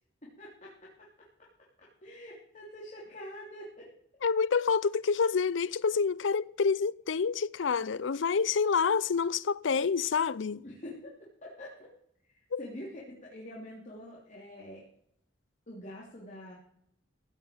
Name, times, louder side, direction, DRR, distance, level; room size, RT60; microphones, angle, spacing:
voice 1, 0.4-1.1 1.8-3.9 10.6-11.9 12.3-14.9 15.7-16.6, left 1 dB, 40° left, 3.4 m, -46 dB
voice 2, 4.2-10.6 12.5-12.6, left 5 dB, 75° left, 0.5 m, -28 dB
16.0 x 6.0 x 8.7 m
head